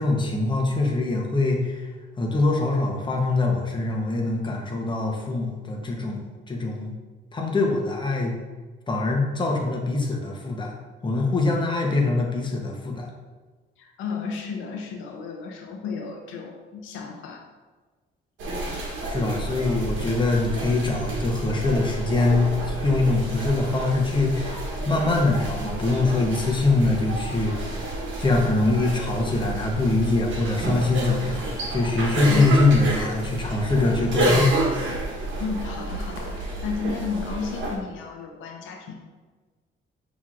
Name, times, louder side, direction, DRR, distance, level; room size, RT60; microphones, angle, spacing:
voice 1, 0.0-1.9 2.2-6.9 7.3-8.3 8.9-10.7 11.0-13.1 19.0-27.9 28.2-34.6, left 2 dB, 25° left, 0 dB, 0.8 m, -23 dB
voice 2, 13.8-17.4 32.3-32.5 35.4-38.9, left 5 dB, 90° left, 2 dB, 0.6 m, -33 dB
sound 1, 18.4-37.8, right 2 dB, 80° right, 1.1 m, -30 dB
5.7 x 3.0 x 2.4 m, 1.3 s
cardioid pair, 90°, 20 cm